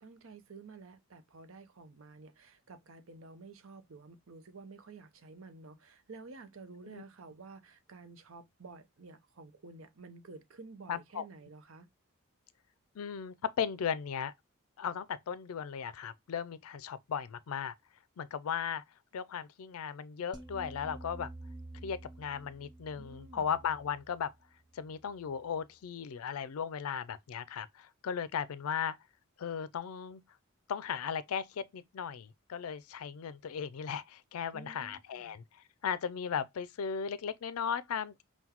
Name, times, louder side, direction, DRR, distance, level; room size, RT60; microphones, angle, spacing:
voice 1, 0.0-11.9 23.0-23.5 34.5-35.3, right 3 dB, 70° right, 0.7 m, -51 dB
voice 2, 10.9-11.2 13.0-14.3 14.8-17.7 18.2-18.8 19.1-21.3 21.8-24.3 24.7-29.0 29.4-30.2 30.7-35.4 35.8-38.2, left 7 dB, 85° left, 0.4 m, -36 dB
sound 1, 20.3-25.6, right 2 dB, 20° right, 0.4 m, -50 dB
5.7 x 2.2 x 2.8 m
head